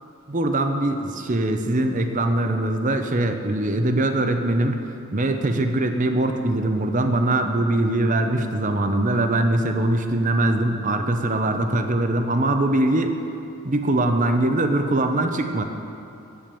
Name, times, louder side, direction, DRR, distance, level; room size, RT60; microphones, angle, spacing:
voice 1, 0.3-13.2 13.6-15.6, right 1 dB, 35° right, 6 dB, 0.7 m, -22 dB
10.5 x 9.2 x 6.9 m, 2.7 s
head